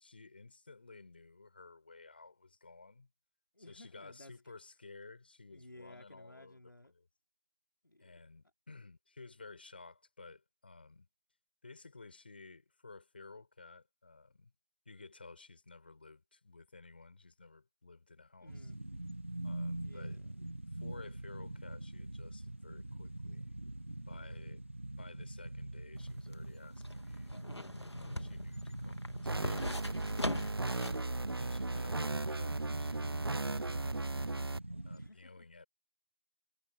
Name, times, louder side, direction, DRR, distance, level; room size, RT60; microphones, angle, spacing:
voice 1, 0.0-3.1 3.7-6.6 8.0-11.1 11.6-14.5 14.9-18.5 19.4-20.2 20.8-23.6 24.1-24.6 24.9-30.3 31.4-34.5 34.8-35.7, left 3 dB, 20° left, 7.6 m, -54 dB
voice 2, 3.5-4.5 5.5-6.9 7.8-8.1 18.4-18.8 19.8-20.3 34.9-35.5, left 1 dB, 50° left, 4.5 m, -57 dB
sound 1, 18.5-35.1, right 1 dB, 30° right, 1.0 m, -44 dB
sound 2, 26.0-31.1 31.4-31.5, left 1 dB, 80° left, 2.1 m, -41 dB
sound 3, 29.3-34.6, right 2 dB, 65° right, 0.6 m, -36 dB
figure-of-eight pair, 175°, 14 cm